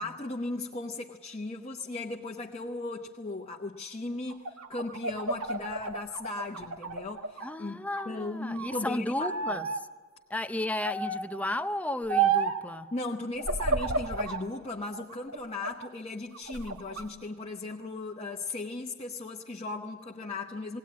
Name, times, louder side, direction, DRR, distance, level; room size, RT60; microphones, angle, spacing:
voice 1, 0.0-7.8 8.1-9.6 12.9-20.8, left 2 dB, 30° left, 1 dB, 0.9 m, -37 dB
sound 1, 4.3-7.5 7.9-8.8 9.2-9.8 10.8-11.3 12.1-12.6 13.4-14.4 14.9-15.9 16.3-17.0, right 4 dB, 80° right, 1.4 m, -31 dB
voice 2, 7.4-9.9 10.3-12.9, left 1 dB, 5° left, 10 dB, 0.6 m, -34 dB
19.5 x 18.0 x 9.5 m, 1.5 s
head